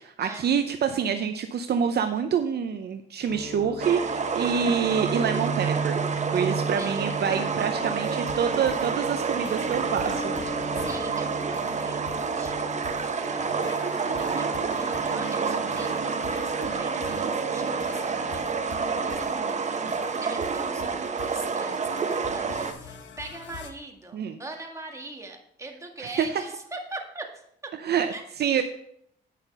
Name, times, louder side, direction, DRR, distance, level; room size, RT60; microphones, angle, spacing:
voice 1, 0.0-6.0 6.3-10.3 24.1-24.4 26.2-26.4 27.8-28.1 28.4-28.6, right 7 dB, 55° right, 7 dB, 0.7 m, -26 dB
sound 1, 3.3-21.8 22.1-23.1, right 3 dB, 20° left, 3.3 m, -37 dB
sound 2, 3.8-22.7, right 5 dB, 35° right, 1.0 m, -29 dB
sound 3, 8.0-23.7, left 6 dB, 65° left, 1.1 m, -45 dB
voice 2, 10.7-14.1 14.3-14.6 15.1-19.9 20.2-27.7 28.1-28.2, right 2 dB, 15° right, 2 dB, 1.9 m, -42 dB
9.1 x 5.8 x 5.5 m, 0.70 s
cardioid pair, 90°, 20 cm